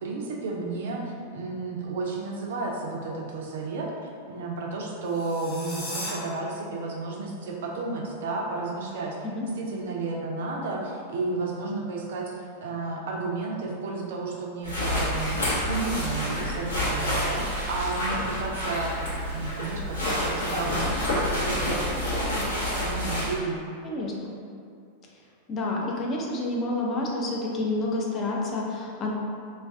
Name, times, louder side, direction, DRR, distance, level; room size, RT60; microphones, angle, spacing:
voice 1, 0.0-9.2 9.6-18.9 19.3-23.6, right 3 dB, 55° right, -1 dB, 0.4 m, -32 dB
sound 1, 5.0-6.1, left 1 dB, 45° left, 1.0 m, -36 dB
sound 2, 14.6-23.3, left 1 dB, 75° left, 0.8 m, -28 dB
voice 2, 23.8-24.3 25.5-29.1, left 2 dB, 30° left, -3 dB, 0.5 m, -29 dB
2.4 x 2.2 x 3.4 m, 2.3 s
figure-of-eight pair, 90°, 0 cm